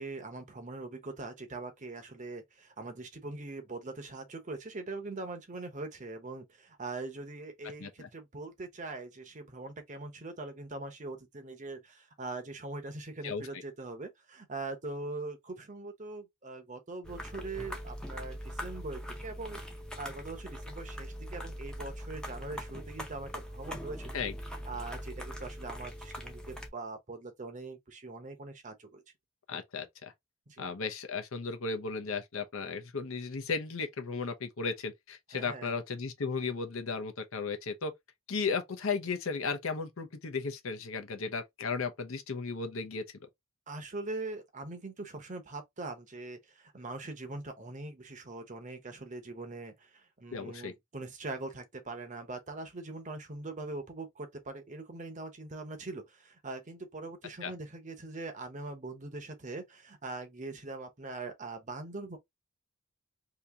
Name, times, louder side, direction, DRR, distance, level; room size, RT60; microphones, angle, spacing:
voice 1, 0.0-19.6 20.0-24.2 24.7-29.0 30.5-30.6 35.3-35.7 43.7-62.2, right 3 dB, 35° right, 0.8 m, -42 dB
sound 1, 17.0-26.7, equal, 5° left, 0.6 m, -42 dB
voice 2, 29.5-30.1 30.6-37.9 38.3-43.0 50.3-50.7 57.4-57.5, left 4 dB, 65° left, 0.7 m, -35 dB
2.9 x 2.8 x 3.4 m
head